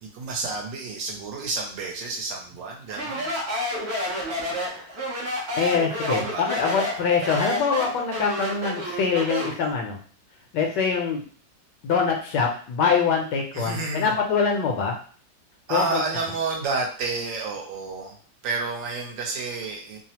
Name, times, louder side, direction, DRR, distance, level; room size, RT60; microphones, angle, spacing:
voice 1, 0.0-3.3 6.1-6.5 13.5-14.1 15.7-18.2 18.4-20.0, right 3 dB, 75° right, 1 dB, 1.3 m, -30 dB
Speech, 2.9-9.6, equal, 55° right, 0.7 m, -29 dB
voice 2, 5.6-10.0 10.5-11.2 11.8-14.9 15.7-16.0, left 5 dB, 75° left, 2 dB, 1.1 m, -24 dB
3.2 x 2.0 x 2.8 m, 0.44 s
omnidirectional pair, 2.0 m